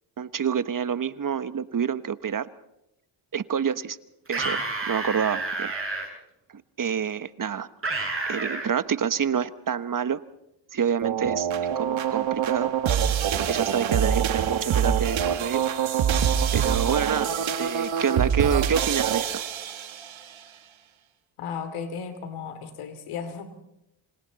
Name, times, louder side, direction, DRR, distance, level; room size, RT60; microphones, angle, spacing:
voice 1, 0.2-2.5 3.3-4.0 4.3-5.7 6.5-7.7 8.3-10.2 10.7-11.5 11.8-12.7 13.4-15.6 16.5-19.4, right 7 dB, 40° right, 14 dB, 1.1 m, -27 dB
sound 1, 4.3-6.1 7.8-8.7, right 3 dB, 25° right, 6.8 m, -29 dB
sound 2, 11.0-20.2, right 8 dB, 70° right, 1.9 m, -25 dB
voice 2, 21.4-23.5, left 6 dB, 90° left, 10 dB, 2.8 m, -35 dB
26.5 x 26.0 x 4.1 m, 0.84 s
cardioid pair, 70°, 49 cm